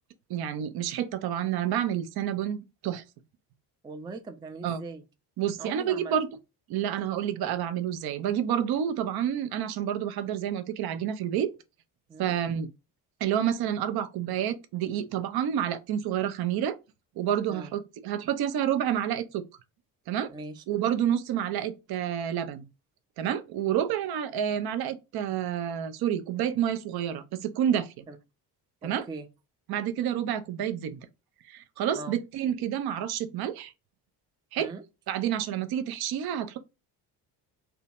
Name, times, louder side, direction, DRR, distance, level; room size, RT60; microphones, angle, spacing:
voice 1, 0.3-3.0 4.6-4.8 5.4-6.3 6.7-11.5 12.2-12.7 13.2-16.8 17.2-19.4 20.1-20.3 20.7-22.7 23.2-28.1 28.8-29.1 29.7-31.0 31.5-33.7 34.5-34.7 35.1-36.6, right 10 dB, 55° right, 0.6 m, -29 dB
voice 2, 3.8-5.0 5.6-6.1 12.1-12.4 17.5-17.7 20.3-20.6 28.1-28.2 28.8-29.3 31.9-32.2 34.6-34.8, right 3 dB, 10° right, 0.3 m, -40 dB
2.7 x 2.2 x 2.6 m
supercardioid pair, 60°, 44 cm